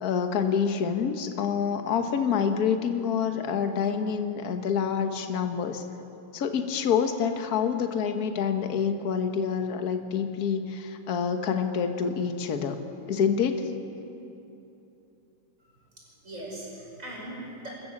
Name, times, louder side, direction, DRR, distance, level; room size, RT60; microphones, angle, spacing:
voice 1, 0.0-5.8 6.3-12.8 13.1-13.7, left 7 dB, 50° left, 6 dB, 1.6 m, -27 dB
voice 2, 15.6-17.7, right 1 dB, 35° right, -3 dB, 6.1 m, -41 dB
28.0 x 14.0 x 7.3 m, 2.8 s
omnidirectional pair, 2.4 m